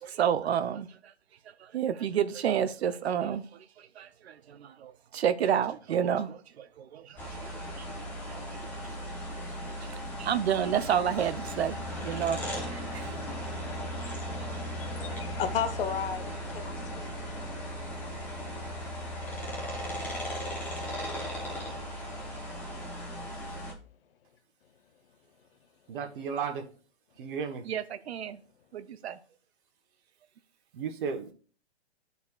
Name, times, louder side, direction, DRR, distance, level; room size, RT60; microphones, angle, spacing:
voice 1, 0.0-0.9 1.7-3.4 3.8-7.5 7.8-8.7 9.7-11.8 12.0-12.4 12.7-13.1 27.7-28.4 28.7-29.2, right 9 dB, 70° right, 0.6 m, -30 dB
sound 1, 7.2-23.7, equal, 5° left, 0.9 m, -37 dB
voice 2, 14.8-17.1, left 7 dB, 55° left, 0.9 m, -33 dB
voice 3, 25.9-26.6 27.2-27.6 30.7-31.3, right 6 dB, 50° right, 1.2 m, -34 dB
12.5 x 4.1 x 2.4 m
hypercardioid pair, 145°, 33 cm